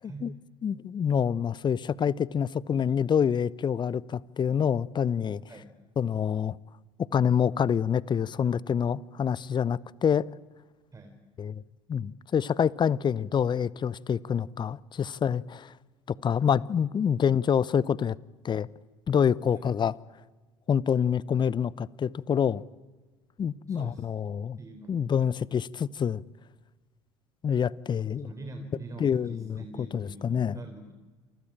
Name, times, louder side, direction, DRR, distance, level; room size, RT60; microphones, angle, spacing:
voice 1, 0.0-0.4 5.5-5.7 10.9-11.2 19.5-19.6 23.7-24.1 24.6-25.1 28.2-30.9, right 2 dB, 20° right, 3.9 m, -44 dB
voice 2, 0.6-5.4 6.0-6.6 7.1-10.3 11.4-11.6 11.9-15.7 16.1-18.1 18.4-18.7 19.1-19.9 20.7-22.6 23.4-24.6 24.9-26.2 27.4-28.3 29.0-30.6, left 7 dB, 30° left, 0.9 m, -27 dB
28.5 x 23.5 x 8.7 m
hypercardioid pair, 70°, 15 cm